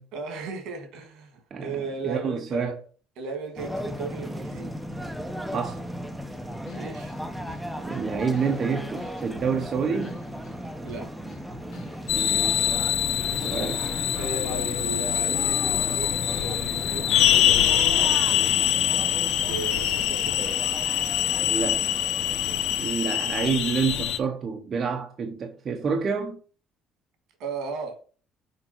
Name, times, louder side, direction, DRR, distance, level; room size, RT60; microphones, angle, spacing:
voice 1, 0.1-2.8 3.2-4.7 6.7-7.1 10.8-11.1 13.0-13.4 14.2-17.7 18.0-19.1 19.4-20.5 22.5-22.8 27.4-28.0, right 4 dB, 70° right, 2.4 m, -36 dB
voice 2, 1.5-2.7 5.5-5.8 7.8-10.2 12.1-12.7 13.4-13.8 21.4-21.9 22.8-26.4, right 5 dB, 35° right, 0.8 m, -28 dB
sound 1, 3.6-22.9, equal, ahead, 0.7 m, -36 dB
sound 2, 6.3-10.6 10.9-17.4 17.6-19.0, left 6 dB, 60° left, 2.4 m, -48 dB
sound 3, 12.1-24.2, left 12 dB, 90° left, 0.7 m, -24 dB
6.6 x 4.6 x 4.5 m
cardioid pair, 155°, 0 cm